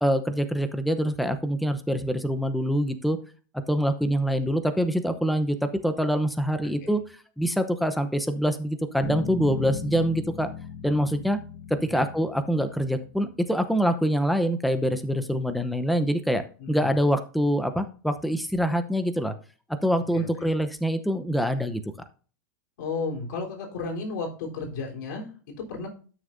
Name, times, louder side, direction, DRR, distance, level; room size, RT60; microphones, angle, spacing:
voice 1, 0.0-3.2 3.7-10.5 10.8-11.4 11.7-16.4 16.7-19.3 19.8-21.8, equal, ahead, 9 dB, 0.7 m, -25 dB
sound 1, 9.0-13.4, left 6 dB, 15° left, 4.3 m, -37 dB
voice 2, 16.6-16.9 20.1-20.5 22.8-25.9, left 4 dB, 70° left, 1 dB, 3.6 m, -34 dB
12.5 x 6.4 x 2.6 m, 0.38 s
supercardioid pair, 135°, 10 cm